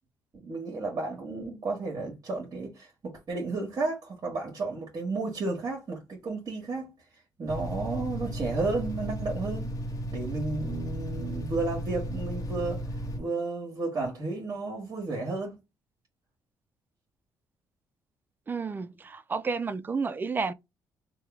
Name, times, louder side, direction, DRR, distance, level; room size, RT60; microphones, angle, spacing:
voice 1, 0.3-6.9 7.4-9.8 10.1-15.6, right 3 dB, 50° right, 1.3 m, -33 dB
sound 1, 7.5-13.2, equal, 45° left, 1.0 m, -34 dB
voice 2, 18.5-20.5, right 4 dB, 25° right, 0.4 m, -31 dB
3.0 x 2.3 x 3.3 m
cardioid pair, 80°, 8 cm